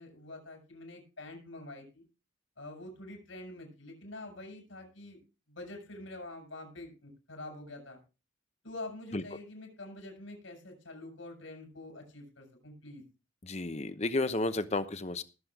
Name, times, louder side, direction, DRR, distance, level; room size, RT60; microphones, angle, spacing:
voice 1, 0.0-2.0 2.6-5.2 5.5-8.0 8.6-13.0, left 2 dB, 90° left, 2 dB, 6.2 m, -46 dB
voice 2, 13.4-15.2, left 2 dB, 35° left, 12 dB, 0.9 m, -32 dB
20.0 x 7.6 x 3.7 m, 0.32 s
head